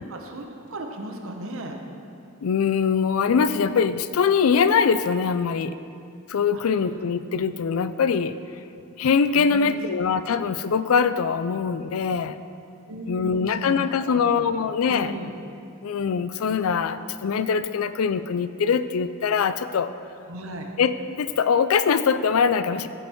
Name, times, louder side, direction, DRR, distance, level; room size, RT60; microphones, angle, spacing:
voice 1, 0.1-1.8 6.5-6.6 9.3-9.8 12.9-14.5 14.9-15.3 20.3-20.7, right 1 dB, 70° right, 3 dB, 1.1 m, -36 dB
voice 2, 2.4-5.8 6.3-8.4 9.0-12.4 13.1-15.1 15.8-19.9 20.8-22.9, left 6 dB, 70° left, 13 dB, 0.4 m, -23 dB
15.0 x 5.4 x 4.5 m, 2.7 s
head